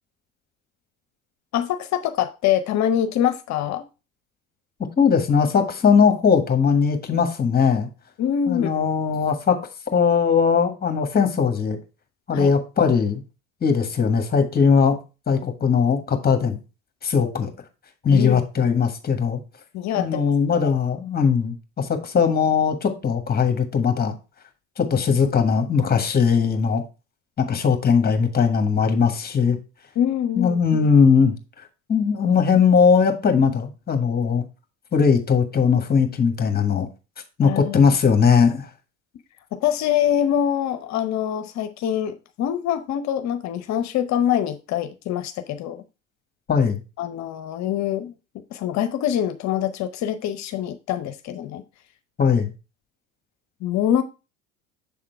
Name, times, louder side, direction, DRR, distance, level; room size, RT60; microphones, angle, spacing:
voice 1, 1.5-3.8 8.2-8.8 12.3-12.5 18.1-18.4 19.7-20.3 20.6-20.7 30.0-30.9 37.4-37.8 39.5-45.8 47.0-48.1 48.5-51.6 53.6-54.0, left 10 dB, 50° left, 0.7 m, -24 dB
voice 2, 5.0-7.9 8.5-9.6 9.9-11.8 12.3-13.2 13.6-15.0 15.3-16.6 17.0-17.5 18.0-19.4 20.0-24.2 24.8-26.8 27.4-29.6 30.4-31.3 31.9-34.4 34.9-36.9 37.4-38.7 46.5-46.8 52.2-52.5, left 6 dB, 25° left, 1.4 m, -19 dB
7.2 x 3.7 x 4.5 m
hypercardioid pair, 80°, 35 cm